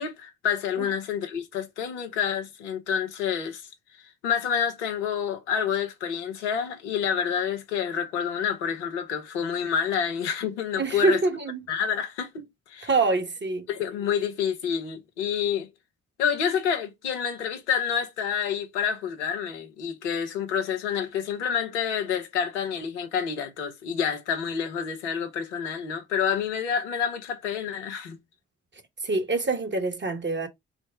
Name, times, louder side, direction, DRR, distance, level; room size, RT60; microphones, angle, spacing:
voice 1, 0.0-3.7 4.0-11.2 11.7-12.9 13.7-15.7 16.2-28.2, left 7 dB, 85° left, 0.8 m, -28 dB
voice 2, 10.8-11.6 12.8-13.7 29.0-30.5, right 3 dB, 30° right, 1.3 m, -25 dB
5.0 x 2.1 x 4.7 m
hypercardioid pair, 45°, 34 cm